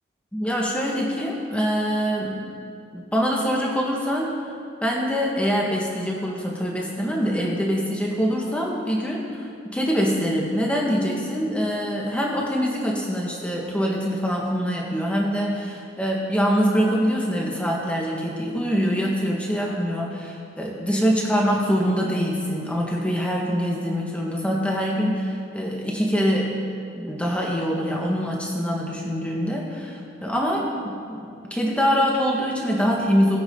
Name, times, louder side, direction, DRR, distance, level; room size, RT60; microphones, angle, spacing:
voice 1, 0.3-2.6 2.9-4.3 4.8-26.5 26.9-33.4, equal, 5° left, -2 dB, 1.8 m, -24 dB
20.5 x 8.8 x 3.9 m, 2.4 s
head